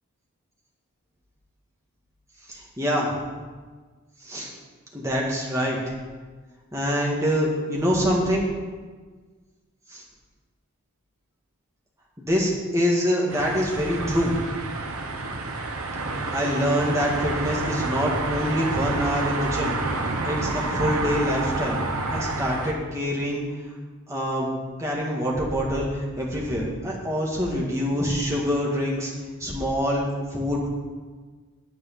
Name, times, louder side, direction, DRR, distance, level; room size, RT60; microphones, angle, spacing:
voice 1, 2.5-3.1 4.2-4.5 4.9-5.9 6.7-8.5 9.9-10.0 12.2-14.3 16.3-19.8 20.2-21.8 22.1-23.4 24.1-24.5 24.8-29.1 29.4-30.7, equal, 15° right, -3 dB, 2.0 m, -25 dB
sound 1, 13.3-22.7, right 2 dB, 75° right, 1.1 m, -29 dB
10.0 x 8.3 x 6.0 m, 1.4 s
head